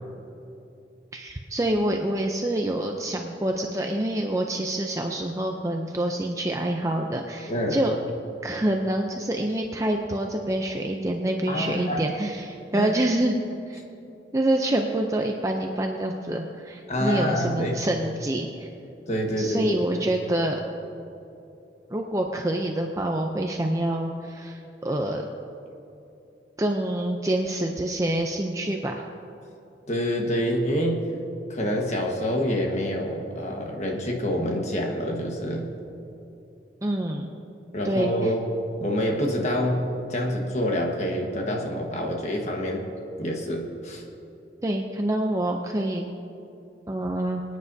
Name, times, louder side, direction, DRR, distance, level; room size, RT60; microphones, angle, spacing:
voice 1, 1.1-7.9 8.4-13.4 13.7-13.8 14.3-18.7 19.4-20.6 21.9-25.2 26.6-29.1 36.8-37.3 37.8-38.3 44.6-46.1 46.9-47.4, right 1 dB, 20° right, 2 dB, 0.5 m, -26 dB
voice 2, 7.5-7.8 11.5-12.0 12.7-12.9 16.9-17.8 19.1-20.0 29.9-31.1 31.5-35.7 37.7-38.4 38.8-42.9 43.2-44.0, equal, 40° left, 1 dB, 1.4 m, -27 dB
23.5 x 9.5 x 2.7 m, 2.8 s
head